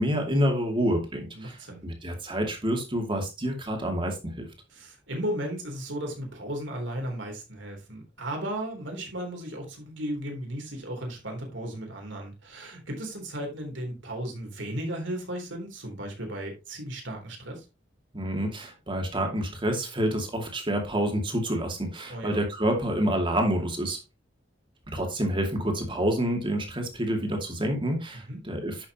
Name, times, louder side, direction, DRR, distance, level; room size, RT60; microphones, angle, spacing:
voice 1, 0.0-4.5 18.1-24.0 24.9-28.9, equal, 25° right, 2.4 m, -28 dB
voice 2, 1.3-1.8 4.7-17.7 22.1-22.4 28.3-28.4, right 1 dB, 75° right, 3.6 m, -35 dB
11.0 x 6.3 x 3.0 m
head